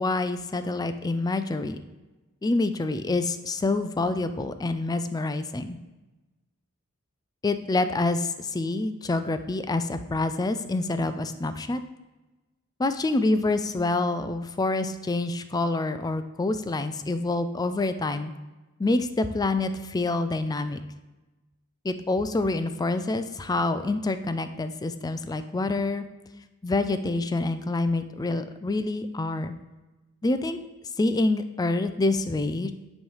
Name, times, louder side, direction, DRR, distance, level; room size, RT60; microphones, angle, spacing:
voice 1, 0.0-1.8 2.4-5.8 7.4-11.8 12.8-18.3 18.8-20.8 21.8-26.0 26.6-29.5 30.2-30.6 31.0-32.7, left 2 dB, 15° left, 10 dB, 0.3 m, -27 dB
9.3 x 3.2 x 5.4 m, 1.1 s
head